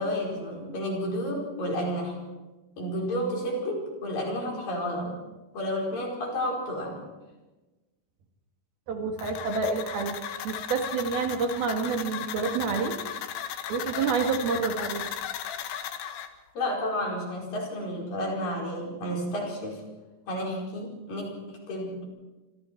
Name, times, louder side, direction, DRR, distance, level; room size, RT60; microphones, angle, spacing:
voice 1, 0.0-2.2 2.8-5.2 5.5-7.1 16.5-19.8 20.3-22.0, equal, 50° left, 0 dB, 6.2 m, -31 dB
voice 2, 8.9-13.0 13.7-15.0, right 5 dB, 60° right, 3 dB, 3.5 m, -28 dB
sound 1, 9.2-16.3, left 9 dB, 80° left, 3.7 m, -36 dB
26.5 x 26.0 x 4.5 m, 1.1 s
omnidirectional pair, 5.1 m